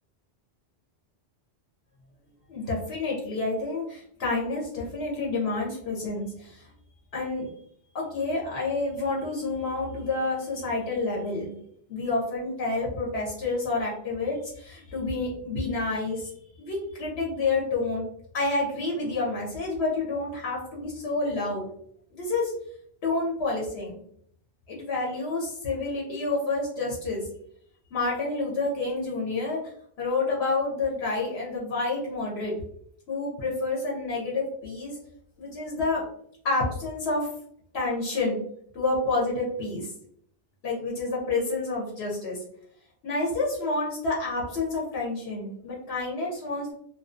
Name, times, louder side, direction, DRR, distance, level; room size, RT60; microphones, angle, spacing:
voice 1, 2.5-6.6 7.1-7.5 7.9-11.5 11.9-16.3 16.6-18.1 18.3-21.6 22.1-22.5 23.0-23.9 24.7-27.3 27.9-29.6 30.0-32.5 33.1-35.0 35.4-36.0 36.4-37.3 37.7-38.4 38.7-39.9 40.6-42.4 43.0-46.7, left 3 dB, 75° left, -3 dB, 0.9 m, -29 dB
2.4 x 2.3 x 2.4 m, 0.66 s
omnidirectional pair, 1.1 m